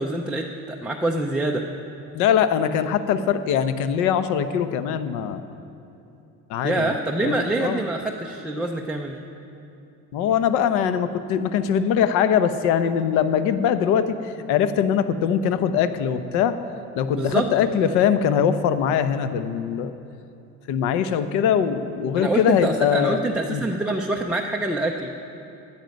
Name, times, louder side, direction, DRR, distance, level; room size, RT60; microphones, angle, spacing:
voice 1, 0.0-1.6 6.6-9.2 17.1-17.5 22.2-25.1, right 2 dB, 5° right, -2 dB, 0.3 m, -25 dB
voice 2, 2.1-5.4 6.5-7.0 7.2-7.8 10.1-16.6 16.9-19.9 20.7-23.2 23.5-23.6, left 8 dB, 70° left, 11 dB, 0.8 m, -22 dB
17.0 x 10.5 x 5.2 m, 2.8 s
cardioid pair, 170°, 31 cm